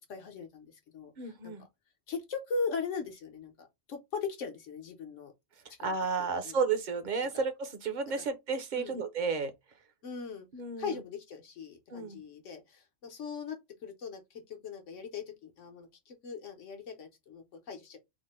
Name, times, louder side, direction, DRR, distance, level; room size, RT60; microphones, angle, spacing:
voice 1, 0.1-1.1 1.4-1.5 2.1-5.3 6.3-6.5 8.2-8.3 8.7-9.0 10.0-10.5 10.8-18.0, left 5 dB, 75° left, 1.3 m, -39 dB
voice 2, 1.2-1.7 5.6-9.5 10.5-11.0 11.9-12.2, right 4 dB, 45° right, 0.7 m, -32 dB
3.7 x 2.1 x 4.2 m
omnidirectional pair, 1.3 m